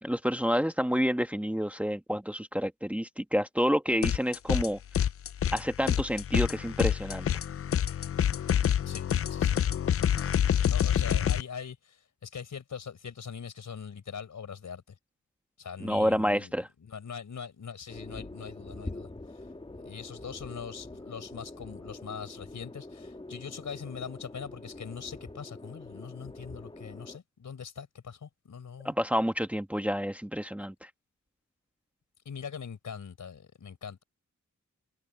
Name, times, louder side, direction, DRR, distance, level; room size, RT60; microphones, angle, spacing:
voice 1, 0.0-4.8 5.5-7.3 15.8-16.7 28.8-30.9, equal, 5° right, 1.2 m, -29 dB
sound 1, 4.0-4.7 4.9-11.4, left 9 dB, 50° left, 0.4 m, -27 dB
voice 2, 8.9-9.6 10.6-14.8 15.6-16.5 16.8-19.5 19.8-28.9 32.2-34.0, left 6 dB, 90° left, 4.4 m, -42 dB
sound 2, 17.9-27.2, left 2 dB, 20° left, 2.4 m, -45 dB
wide cardioid pair, 165°, 29 cm